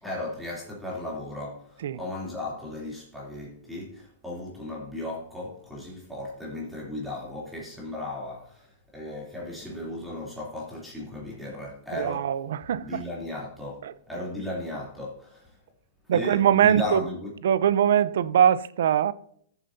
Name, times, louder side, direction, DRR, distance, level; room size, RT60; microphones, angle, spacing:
voice 1, 0.0-12.3 12.7-15.6 16.1-17.3, left 1 dB, ahead, 2.9 m, -36 dB
voice 2, 11.9-13.0 13.8-13.9 16.1-17.0 17.4-19.1, right 9 dB, 75° right, 0.5 m, -22 dB
14.0 x 7.2 x 2.7 m
hypercardioid pair, 145°, 0 cm